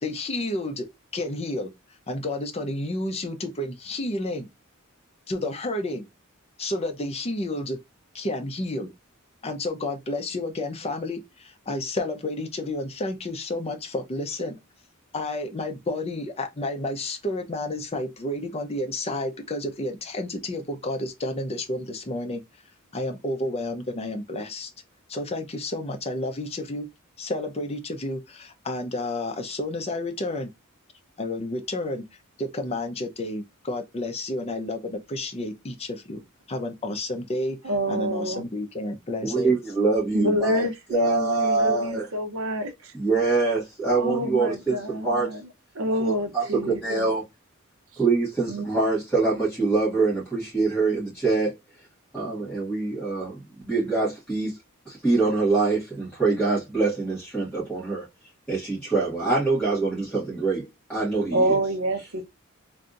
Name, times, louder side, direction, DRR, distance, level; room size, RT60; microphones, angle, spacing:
voice 1, 0.0-0.9 1.1-1.7 2.1-4.5 5.3-6.1 6.6-7.8 8.1-8.9 9.4-14.6 15.1-22.4 22.9-24.7 25.1-26.9 27.2-30.5 31.2-32.0 32.4-36.2 36.5-39.5, left 2 dB, 30° left, 0.6 m, -31 dB
voice 2, 37.6-38.4 40.1-42.7 44.0-45.4 45.8-47.1 48.5-48.7 61.3-62.2, equal, 65° right, 0.8 m, -27 dB
voice 3, 39.2-42.1 42.9-45.3 46.0-47.2 48.0-51.5 52.1-54.5 54.8-58.1 58.5-60.6 60.9-61.6, right 3 dB, 5° left, 1.6 m, -24 dB
3.3 x 2.6 x 2.4 m
head